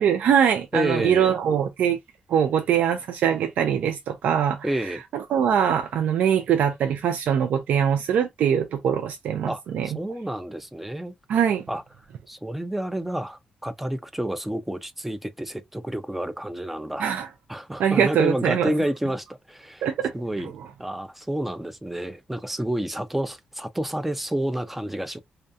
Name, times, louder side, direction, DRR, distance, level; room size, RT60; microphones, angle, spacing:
voice 1, 0.0-2.0 2.3-4.6 5.1-9.9 11.3-11.6 17.0-17.3 17.8-18.7 19.8-20.1, right 8 dB, 90° right, 0.4 m, -22 dB
voice 2, 0.7-1.4 4.6-5.0 9.5-11.1 11.7-11.8 12.3-17.1 17.5-19.9 20.1-20.5 20.8-25.2, right 1 dB, 5° right, 0.3 m, -29 dB
2.3 x 2.2 x 2.5 m
wide cardioid pair, 135°, 3 cm